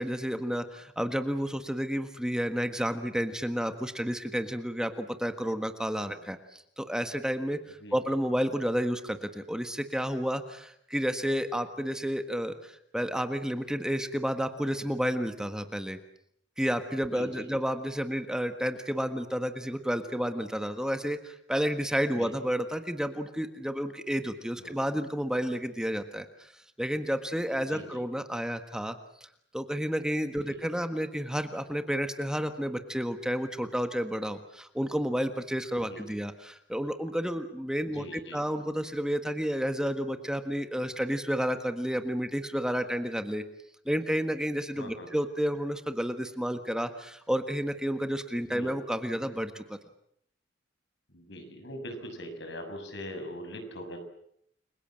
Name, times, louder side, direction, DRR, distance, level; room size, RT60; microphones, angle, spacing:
voice 1, 0.0-16.0 16.6-26.5 26.8-29.0 29.5-43.4 43.8-49.8, equal, 5° right, 8 dB, 1.5 m, -31 dB
voice 2, 17.1-17.5 22.2-22.3 24.6-24.8 27.7-28.0 30.4-30.5 35.9-36.0 37.9-38.4 44.7-45.1 48.5-48.7 51.1-54.0, equal, 75° left, 6 dB, 6.8 m, -42 dB
30.0 x 23.5 x 7.7 m, 0.70 s
head